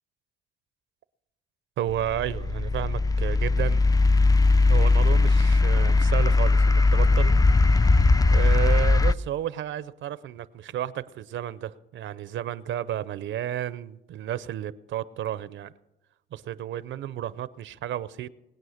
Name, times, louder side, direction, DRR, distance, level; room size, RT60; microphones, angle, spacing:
voice 1, 1.8-3.8 4.7-15.7 16.3-18.3, right 11 dB, 70° right, 16 dB, 0.6 m, -32 dB
sound 1, 1.9-9.1, left 3 dB, 20° left, 0.4 m, -19 dB
20.5 x 9.0 x 6.5 m, 0.97 s
cardioid pair, 90°, 20 cm